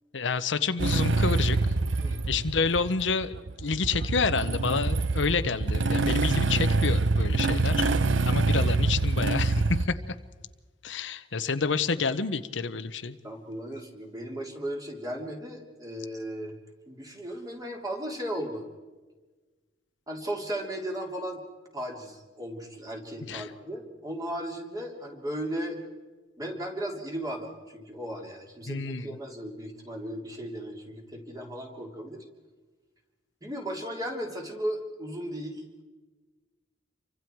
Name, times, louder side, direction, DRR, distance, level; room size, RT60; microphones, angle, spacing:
voice 1, 0.1-1.6 2.3-3.3 3.6-7.9 8.3-10.0 10.8-13.2 23.3-23.5 28.7-29.2, left 4 dB, 75° left, 11 dB, 0.9 m, -28 dB
Motorcycle / Engine starting, 0.8-9.9, right 3 dB, 80° right, 0.8 m, -25 dB
voice 2, 13.2-16.6 16.9-18.7 20.1-21.4 21.7-25.8 26.4-32.2 33.4-35.8, right 1 dB, 20° right, 1 dB, 3.3 m, -36 dB
28.5 x 24.5 x 4.7 m, 1.3 s
head